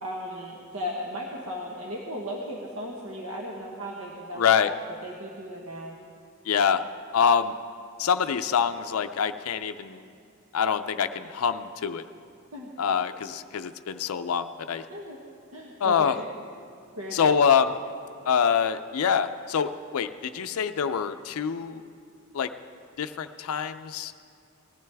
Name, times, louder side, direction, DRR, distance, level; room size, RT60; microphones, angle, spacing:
voice 1, 0.0-6.0 12.5-12.7 14.9-15.2 15.5-16.3 17.0-17.4, equal, 70° right, -2 dB, 1.2 m, -36 dB
voice 2, 4.4-4.7 6.5-6.8 7.1-7.5 8.0-10.1 10.5-12.0 12.8-14.9 15.8-16.2 17.1-17.8 18.3-21.8 22.3-22.5 23.0-24.2, left 7 dB, 85° left, 9 dB, 0.4 m, -25 dB
19.5 x 14.0 x 3.4 m, 2.4 s
head